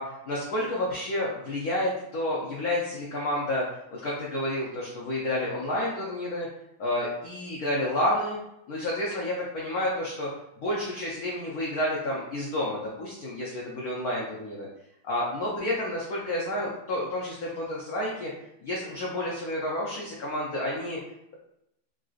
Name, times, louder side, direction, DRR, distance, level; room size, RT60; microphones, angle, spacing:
voice 1, 0.0-3.6 3.9-6.5 6.8-8.4 8.7-10.3 10.6-14.7 15.0-18.3 18.6-21.0, left 1 dB, 85° left, -4 dB, 0.8 m, -30 dB
3.8 x 2.5 x 2.4 m, 0.82 s
omnidirectional pair, 2.4 m